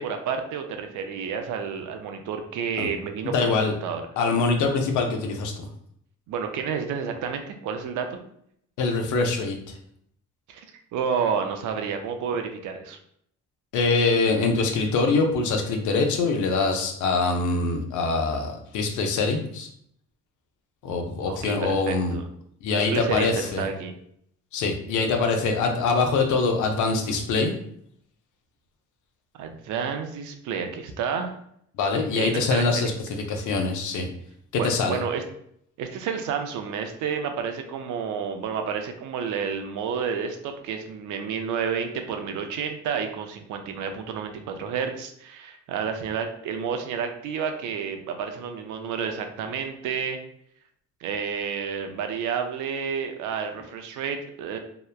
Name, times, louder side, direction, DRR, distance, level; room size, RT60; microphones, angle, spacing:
voice 1, 0.0-4.0 6.3-8.2 10.5-10.6 10.9-13.0 21.2-22.2 22.7-23.9 29.4-31.4 32.1-32.9 34.5-35.2 35.8-50.2 51.0-54.6, right 6 dB, 80° right, 6 dB, 0.5 m, -30 dB
voice 2, 3.2-3.7 4.2-5.7 8.8-9.6 13.7-19.7 20.8-22.2 22.6-23.7 24.5-27.6 31.8-32.9 33.3-34.1 34.5-35.0, left 4 dB, 80° left, 4 dB, 0.6 m, -24 dB
2.9 x 2.1 x 2.3 m, 0.69 s
cardioid pair, 90°, 30 cm